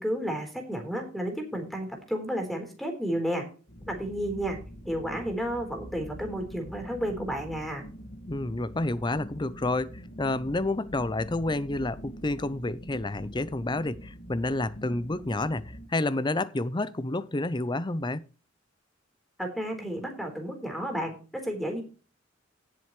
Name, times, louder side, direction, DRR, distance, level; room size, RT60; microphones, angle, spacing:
voice 1, 0.0-3.4 3.9-4.6 4.9-7.8 19.4-21.8, equal, ahead, 4.0 m, -32 dB
sound 1, 3.7-15.9, equal, 70° left, 2.0 m, -44 dB
voice 2, 8.3-18.2, left 2 dB, 25° left, 0.6 m, -29 dB
17.5 x 7.7 x 3.2 m
head